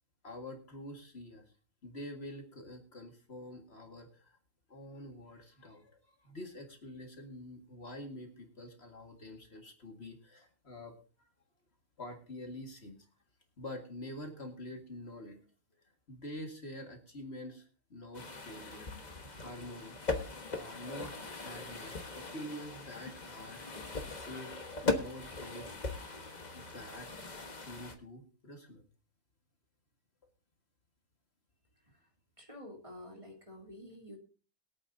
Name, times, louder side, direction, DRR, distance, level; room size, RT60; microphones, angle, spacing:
voice 1, 0.2-1.4 1.8-4.4 4.7-11.3 12.0-13.1 13.6-15.4 16.1-20.0 20.5-23.7 24.0-25.8 26.5-28.8, left 1 dB, 50° left, 3 dB, 2.1 m, -47 dB
sound 1, 18.1-27.9, left 3 dB, 35° left, 1.4 m, -40 dB
voice 2, 32.4-34.2, left 1 dB, 25° right, 1 dB, 2.7 m, -49 dB
22.5 x 8.5 x 2.7 m, 0.37 s
omnidirectional pair, 1.4 m